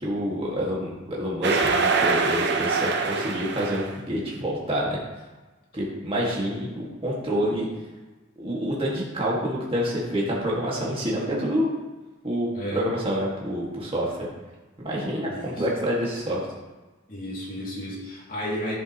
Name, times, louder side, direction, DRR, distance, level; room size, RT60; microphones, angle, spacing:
voice 1, 0.0-5.0 5.7-7.7 8.4-11.7 12.2-14.1 14.8-16.4, equal, 25° right, -5 dB, 1.9 m, -27 dB
sound 1, 1.4-4.0, right 4 dB, 55° right, 0.7 m, -24 dB
voice 2, 12.5-12.9 15.3-15.6 17.1-18.8, equal, 45° left, -5 dB, 2.6 m, -33 dB
10.5 x 7.3 x 3.0 m, 1.2 s
head